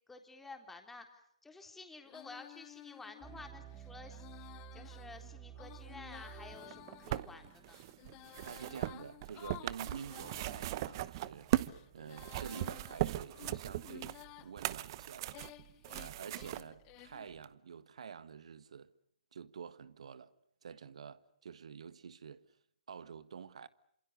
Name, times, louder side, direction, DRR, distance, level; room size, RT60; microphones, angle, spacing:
voice 1, 0.1-7.8, left 3 dB, 5° left, 3.6 m, -52 dB
Female singing, 2.0-11.0 11.5-14.5 15.0-17.3, left 20 dB, 25° left, 1.1 m, -55 dB
sound 1, 3.2-9.4 10.2-12.8, right 10 dB, 15° right, 3.3 m, -54 dB
sound 2, 6.6-11.8 12.1-16.6 17.4-17.5, right 15 dB, 40° right, 1.0 m, -38 dB
voice 2, 8.4-11.5 11.9-15.4 15.9-18.9 19.3-20.3 20.6-22.4 22.9-23.7, right 7 dB, 65° right, 1.6 m, -48 dB
28.5 x 27.0 x 6.8 m
figure-of-eight pair, 135°, 4 cm